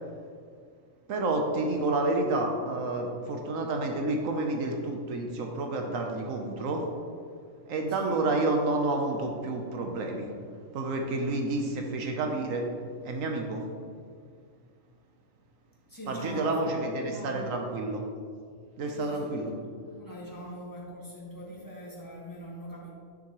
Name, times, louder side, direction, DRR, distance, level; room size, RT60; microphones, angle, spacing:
voice 1, 1.1-6.8 7.7-10.3 10.7-12.7 13.0-13.6 16.1-18.0 18.8-19.5, right 2 dB, 90° right, 2 dB, 1.3 m, -29 dB
voice 2, 7.9-8.2 15.9-17.6 18.9-22.9, equal, 15° left, -5 dB, 1.8 m, -43 dB
10.5 x 6.2 x 3.1 m, 2.2 s
omnidirectional pair, 1.3 m